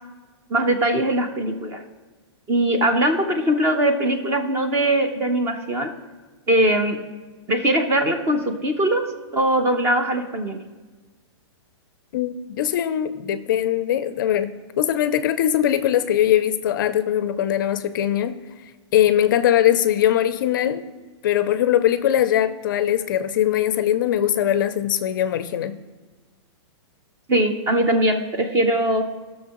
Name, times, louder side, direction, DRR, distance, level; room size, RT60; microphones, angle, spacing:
voice 1, 0.5-1.8 2.5-5.9 6.5-7.0 7.5-9.0 9.3-10.6 27.3-29.1, right 1 dB, 15° right, 7 dB, 0.6 m, -21 dB
voice 2, 12.1-18.4 18.9-20.8 21.2-25.8, left 11 dB, 45° left, 12 dB, 0.5 m, -21 dB
19.0 x 6.4 x 3.0 m, 1.3 s
hypercardioid pair, 165°, 15 cm